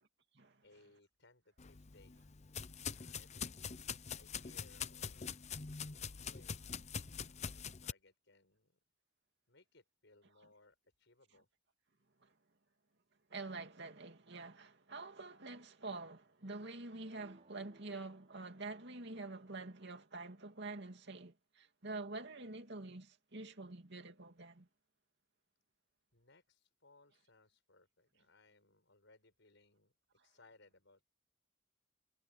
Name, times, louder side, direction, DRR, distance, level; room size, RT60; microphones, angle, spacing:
voice 1, 0.6-2.1 2.9-5.4 5.7-6.7 7.2-8.8 9.5-11.5 26.1-29.9 30.2-31.0, left 2 dB, 65° left, 7.7 m, -67 dB
sound 1, 1.6-7.9, left 6 dB, 35° left, 0.7 m, -44 dB
voice 2, 13.3-24.7, right 3 dB, 60° right, 2.7 m, -47 dB
sound 2, 17.0-19.1, right 1 dB, 40° right, 4.1 m, -67 dB
head